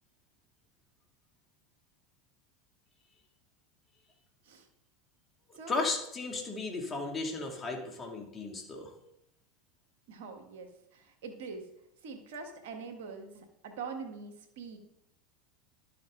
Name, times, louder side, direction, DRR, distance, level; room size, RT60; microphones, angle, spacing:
voice 1, 5.7-8.9, left 3 dB, 30° left, 2 dB, 2.5 m, -35 dB
voice 2, 10.1-11.7 12.0-14.8, right 5 dB, 75° right, 5 dB, 1.8 m, -44 dB
11.5 x 6.9 x 3.9 m, 0.82 s
hypercardioid pair, 90°, 0 cm